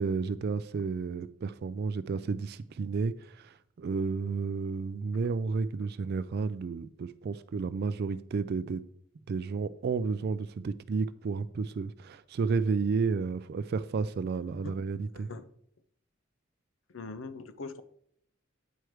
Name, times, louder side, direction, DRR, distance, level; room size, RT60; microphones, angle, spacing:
voice 1, 0.0-8.8 9.3-15.3, right 4 dB, 55° right, 0.3 m, -32 dB
voice 2, 15.1-15.4 16.9-17.8, left 3 dB, 80° left, 0.7 m, -41 dB
9.0 x 4.8 x 4.5 m
head